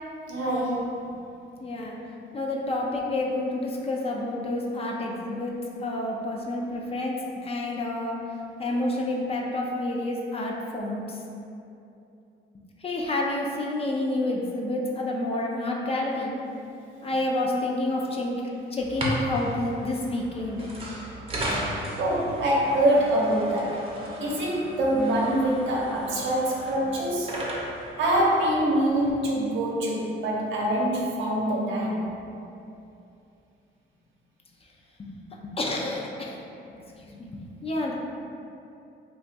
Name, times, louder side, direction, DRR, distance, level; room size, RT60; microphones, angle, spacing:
voice 1, 0.3-1.0 22.0-23.8 24.2-27.3 28.0-32.1, right 1 dB, 70° right, -4 dB, 0.7 m, -25 dB
voice 2, 1.6-1.9 2.3-5.5 5.8-7.1 7.4-8.2 8.6-11.0 12.8-16.3 17.0-18.4 18.7-20.7 35.0-35.1 35.6-36.4 37.1-37.9, left 2 dB, 30° left, -2 dB, 0.4 m, -29 dB
sound 1, 18.8-29.1, equal, 30° right, 0.7 m, -35 dB
2.5 x 2.3 x 3.9 m, 2.7 s
cardioid pair, 90°, 20 cm